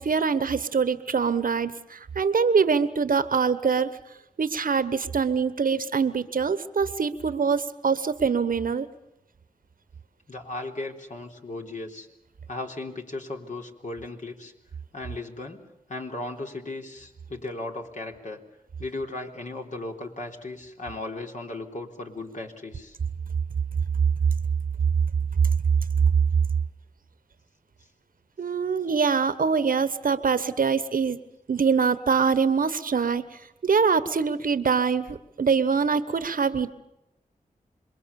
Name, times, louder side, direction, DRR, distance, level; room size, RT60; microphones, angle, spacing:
voice 1, 0.0-3.9 4.4-8.9 28.4-31.2 31.5-33.3 33.6-36.7, right 5 dB, 70° right, 13 dB, 1.2 m, -24 dB
voice 2, 10.3-12.1 12.5-14.5 14.9-15.6 15.9-18.4 18.8-23.0, left 2 dB, 55° left, 2 dB, 3.7 m, -36 dB
27.0 x 22.0 x 7.1 m, 0.89 s
cardioid pair, 45°, 15 cm